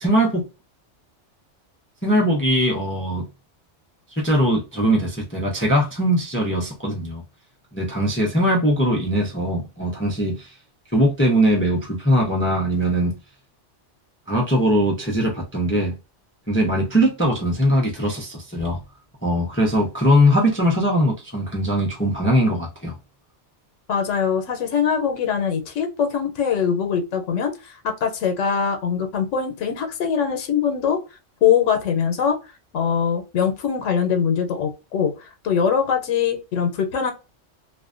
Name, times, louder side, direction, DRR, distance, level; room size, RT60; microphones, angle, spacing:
voice 1, 0.0-0.4 2.0-3.2 4.2-7.2 7.7-10.5 10.9-13.1 14.3-15.9 16.5-18.8 19.2-22.9, equal, 15° left, 0.4 m, -20 dB
voice 2, 23.9-31.0 31.4-32.4 32.7-37.1, left 7 dB, 90° left, 1.0 m, -22 dB
2.5 x 2.1 x 2.4 m
omnidirectional pair, 1.2 m